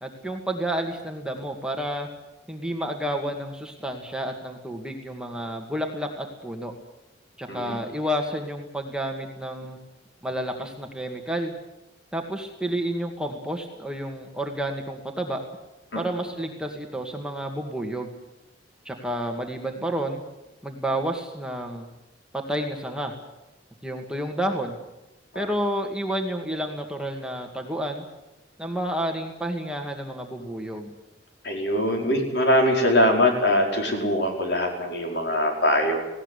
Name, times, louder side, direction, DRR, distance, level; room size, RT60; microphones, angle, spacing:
voice 1, 0.0-2.1 2.5-6.7 7.4-9.8 10.2-11.5 12.1-15.4 15.9-18.1 18.9-20.2 20.6-21.9 22.3-23.1 23.8-24.8 25.3-28.0 28.6-30.9, right 1 dB, 5° right, 2 dB, 2.1 m, -30 dB
voice 2, 7.5-7.8 15.9-16.0 25.3-25.5 31.4-36.0, left 1 dB, 60° left, 2 dB, 5.1 m, -22 dB
19.5 x 17.5 x 10.0 m, 0.98 s
head